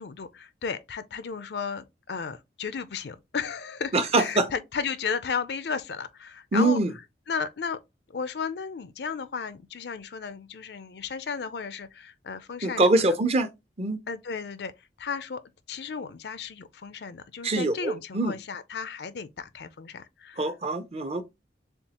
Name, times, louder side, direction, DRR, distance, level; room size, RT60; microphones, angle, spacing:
voice 1, 0.0-6.8 7.3-7.8 8.1-13.2 14.1-14.7 15.0-15.4 15.7-20.5, left 6 dB, 65° left, 0.5 m, -34 dB
voice 2, 3.9-4.5 6.5-6.9 12.6-13.5 13.8-14.0 17.4-18.3 20.4-21.2, right 2 dB, 35° right, 0.6 m, -24 dB
7.1 x 2.4 x 2.8 m
head